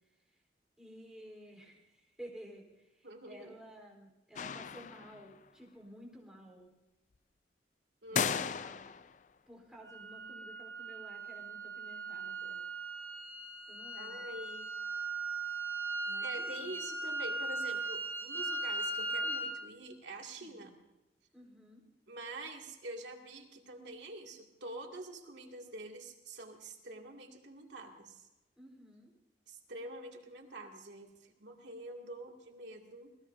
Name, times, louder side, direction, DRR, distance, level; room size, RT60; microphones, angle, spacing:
voice 1, 0.8-6.7 8.1-8.9 9.5-12.6 13.7-14.3 16.1-16.8 20.4-20.7 21.3-21.8 28.6-29.1, equal, 5° right, -2 dB, 3.9 m, -53 dB
voice 2, 3.0-3.6 8.0-8.4 14.0-14.7 16.2-20.7 22.1-28.3 29.5-33.2, right 2 dB, 90° right, 1 dB, 2.3 m, -46 dB
sound 1, 4.4-5.3 8.2-9.2, left 7 dB, 45° left, 0.4 m, -35 dB
sound 2, 9.9-19.5, right 2 dB, 15° left, 1.9 m, -38 dB
26.5 x 19.0 x 2.7 m, 1.0 s
head